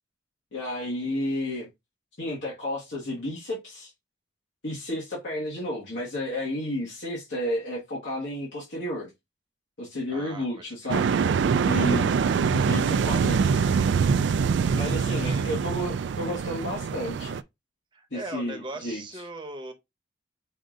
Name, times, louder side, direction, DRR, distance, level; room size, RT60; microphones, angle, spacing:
voice 1, 0.5-1.7 2.2-3.9 4.6-9.1 9.8-11.2 11.7-12.1 12.5-13.8 14.7-17.4 18.1-19.2, left 1 dB, 75° left, 1.5 m, -32 dB
voice 2, 10.1-11.1 11.7-12.6 14.7-15.5 17.9-19.7, right 2 dB, 25° right, 0.9 m, -41 dB
sound 1, 10.9-17.4, right 6 dB, 70° right, 0.3 m, -24 dB
5.2 x 2.6 x 3.7 m
head